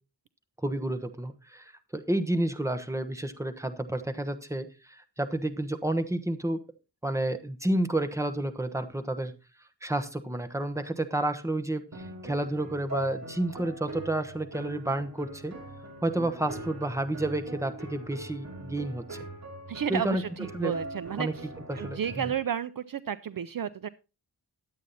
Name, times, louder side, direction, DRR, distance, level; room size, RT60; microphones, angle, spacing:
voice 1, 0.6-6.6 7.0-9.3 9.8-15.5 16.0-19.2 19.9-20.2 20.5-20.7 21.2-21.3 21.7-22.3, right 1 dB, 5° right, 8 dB, 1.1 m, -30 dB
sound 1, 11.9-22.4, right 2 dB, 40° right, 2.8 m, -42 dB
voice 2, 19.7-21.5 21.7-23.9, right 9 dB, 55° right, 14 dB, 0.5 m, -32 dB
11.0 x 8.4 x 4.1 m, 0.30 s
wide cardioid pair, 115°, 41 cm